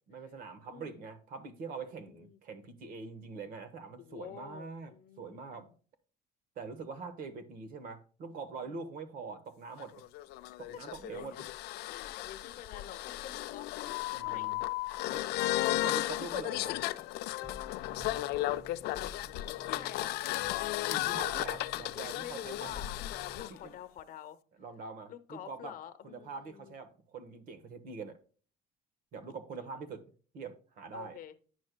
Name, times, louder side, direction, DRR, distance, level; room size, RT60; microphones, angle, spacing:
voice 1, 0.1-4.9 5.2-5.7 6.6-10.0 10.6-11.4 14.1-14.6 15.1-15.2 15.7-16.9 20.9-22.8 23.5-23.8 24.6-25.7 26.0-28.2 29.1-30.0 30.3-31.2, right 4 dB, 60° right, 1.1 m, -44 dB
voice 2, 0.6-1.0 1.9-2.4 4.0-5.7 8.6-8.8 10.4-11.3 11.8-14.6 19.7-20.3 21.9-22.9 23.3-24.4 25.1-26.8 29.6-29.7 30.9-31.3, left 10 dB, 55° left, 0.8 m, -48 dB
sound 1, 9.8-23.5, left 16 dB, 85° left, 0.4 m, -35 dB
sound 2, 17.4-23.4, left 1 dB, 15° right, 1.7 m, -52 dB
9.4 x 6.3 x 2.2 m
cardioid pair, 135°, 17 cm